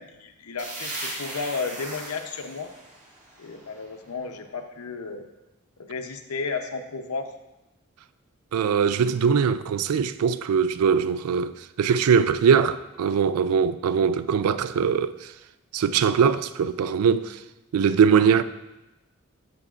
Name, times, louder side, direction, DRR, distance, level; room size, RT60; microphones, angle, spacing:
voice 1, 0.0-2.7 3.4-5.3 5.8-7.3, left 4 dB, 90° left, 0.7 m, -33 dB
sound 1, 0.6-4.2, right 1 dB, 35° right, 2.0 m, -38 dB
voice 2, 8.5-15.1 15.7-17.4 17.7-18.4, right 6 dB, 85° right, 0.4 m, -21 dB
12.0 x 6.8 x 2.4 m
head